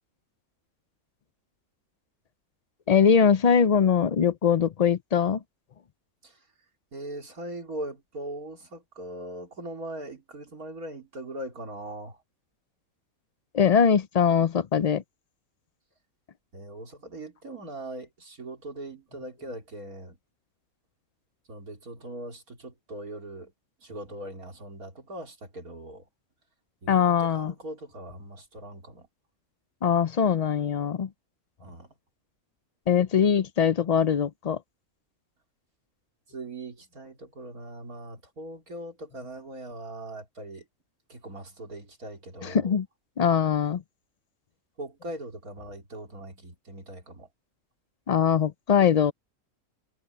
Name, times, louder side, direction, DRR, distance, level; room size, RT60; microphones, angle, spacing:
voice 1, 2.9-5.4 13.5-15.0 26.9-27.5 29.8-31.1 32.9-34.6 42.4-42.8 43.2-43.8 48.1-49.1, left 7 dB, 85° left, 0.3 m, -22 dB
voice 2, 6.9-12.2 16.5-20.2 21.5-23.5 23.8-26.1 26.8-29.1 31.6-31.9 36.3-40.7 41.1-42.8 44.8-47.3, right 1 dB, 85° right, 4.1 m, -40 dB
omnidirectional pair, 1.5 m